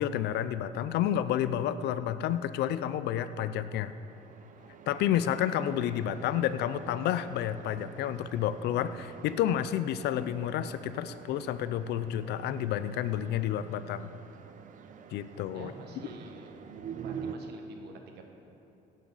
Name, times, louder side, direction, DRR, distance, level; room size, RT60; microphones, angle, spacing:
voice 1, 0.0-3.9 4.9-14.1 15.1-15.7, left 10 dB, 75° left, 13 dB, 0.5 m, -30 dB
sound 1, 3.4-17.4, right 7 dB, 50° right, 0.7 m, -47 dB
voice 2, 15.5-16.5 16.9-18.2, right 3 dB, 75° right, 3 dB, 1.5 m, -47 dB
17.0 x 9.2 x 4.1 m, 3.0 s
cardioid pair, 110°, 17 cm